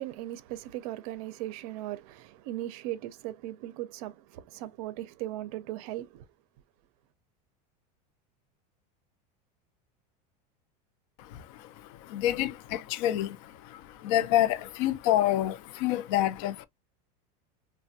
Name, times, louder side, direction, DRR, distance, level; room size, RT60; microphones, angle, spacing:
voice 1, 0.0-6.2, right 15 dB, 60° right, 0.5 m, -38 dB
voice 2, 11.2-16.6, left 13 dB, 55° left, 0.4 m, -28 dB
3.3 x 2.1 x 2.6 m
supercardioid pair, 160°, 21 cm